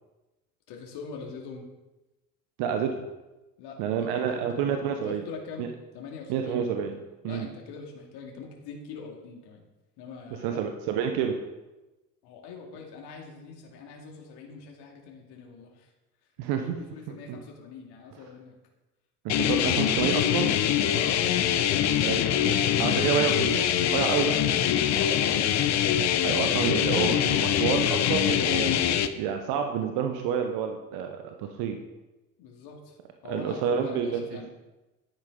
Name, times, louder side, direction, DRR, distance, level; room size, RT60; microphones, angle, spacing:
voice 1, 0.7-1.7 3.6-4.8 5.0-5.7 5.9-6.7 7.2-9.6 10.0-10.6 12.2-15.9 16.5-18.6 19.3-19.5 20.9-22.2 24.9-25.5 32.4-33.0 33.2-34.5, left 5 dB, 50° left, 0 dB, 2.4 m, -43 dB
voice 2, 2.6-3.0 3.8-5.2 5.6-5.7 6.3-7.0 7.2-7.5 10.4-11.4 16.4-16.7 17.3-17.4 19.2-20.5 22.0-22.4 22.8-23.6 23.9-24.4 26.2-28.9 29.2-31.8 33.3-34.4, right 8 dB, 50° right, 5 dB, 1.2 m, -28 dB
sound 1, 19.3-29.1, left 10 dB, 35° left, 0.8 m, -24 dB
11.0 x 9.7 x 3.9 m, 1.1 s
hypercardioid pair, 75°, 50 cm